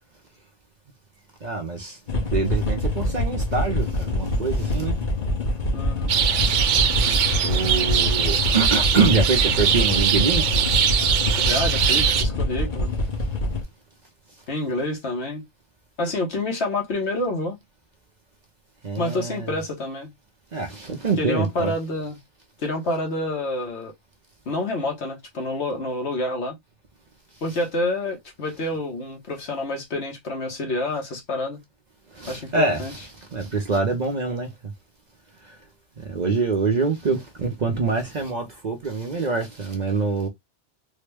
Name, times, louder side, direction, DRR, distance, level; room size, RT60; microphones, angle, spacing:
voice 1, 1.4-2.0 2.3-5.0 7.4-10.7 18.8-19.5 20.5-21.7 32.1-32.8 33.3-34.5 36.1-40.3, right 4 dB, 45° right, 0.7 m, -25 dB
sound 1, 2.1-13.6, left 1 dB, 45° left, 1.0 m, -25 dB
voice 2, 5.7-6.1 11.4-13.0 14.5-15.4 16.0-17.6 19.0-20.1 21.2-22.2 22.6-23.9 24.5-26.5 27.4-31.6 32.3-32.9, left 2 dB, 70° left, 1.4 m, -28 dB
sound 2, 6.1-12.2, right 8 dB, 85° right, 0.9 m, -22 dB
3.6 x 2.1 x 3.3 m
omnidirectional pair, 1.2 m